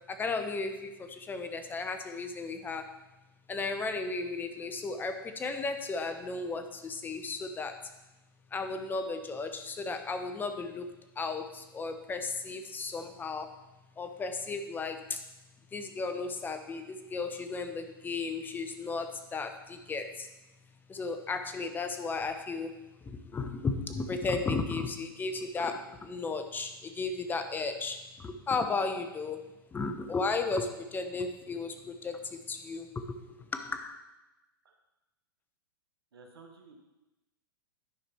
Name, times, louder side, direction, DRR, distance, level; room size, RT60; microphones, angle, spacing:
voice 1, 0.1-2.9 3.5-7.8 8.5-10.9 11.2-13.5 14.0-15.2 15.7-20.3 20.9-22.7 23.1-29.4 29.7-32.9 33.2-34.0, left 4 dB, 15° left, 7 dB, 0.8 m, -34 dB
voice 2, 36.1-36.8, right 3 dB, 80° right, 3 dB, 1.5 m, -53 dB
10.5 x 5.0 x 4.4 m, 1.0 s
hypercardioid pair, 110°, 12 cm